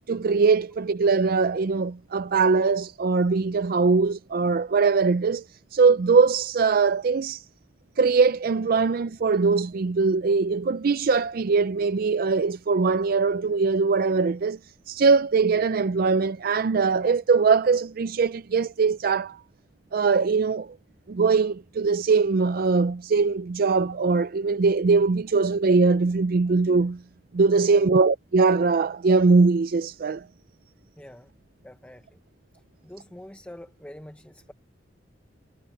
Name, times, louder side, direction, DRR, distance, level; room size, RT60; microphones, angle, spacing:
voice 1, 0.1-5.4 5.7-7.4 8.0-14.6 14.9-19.4 19.9-20.8 21.1-27.0 27.3-30.3, right 4 dB, 55° right, 0.4 m, -21 dB
voice 2, 31.0-31.3 31.6-32.2 32.8-34.5, left 1 dB, 10° left, 0.9 m, -45 dB
head